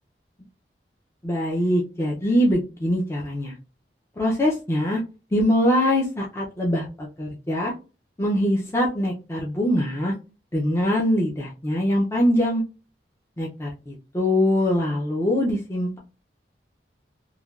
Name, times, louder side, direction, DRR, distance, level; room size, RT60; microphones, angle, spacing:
voice 1, 1.2-3.5 4.2-5.0 5.3-7.7 8.2-10.1 10.5-12.6 13.4-16.0, equal, 15° left, -3 dB, 0.4 m, -23 dB
3.1 x 2.2 x 2.3 m, 0.32 s
head